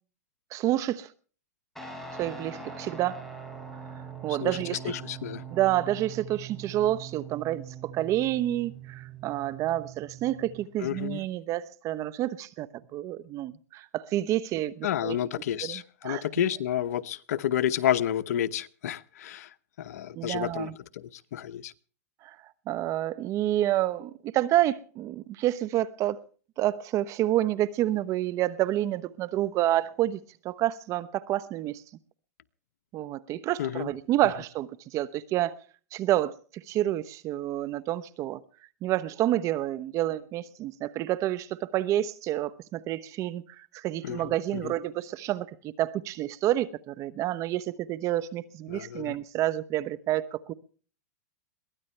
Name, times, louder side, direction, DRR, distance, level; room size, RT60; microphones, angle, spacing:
voice 1, 0.5-1.1 2.2-3.2 4.2-4.9 5.5-15.2 15.6-16.3 20.1-20.7 22.2-22.4 22.7-26.2 26.6-30.2 30.4-31.8 32.9-35.6 35.9-38.4 38.8-50.5, right 14 dB, 35° right, 0.9 m, -29 dB
Guitar, 1.8-10.7, right 6 dB, 5° left, 5.8 m, -42 dB
voice 2, 4.8-5.4 10.8-11.2 14.8-19.5 19.8-21.7 33.6-33.9 44.0-44.7 48.7-49.2, left 10 dB, 70° left, 1.0 m, -30 dB
22.5 x 17.0 x 3.3 m
hypercardioid pair, 125°, 9 cm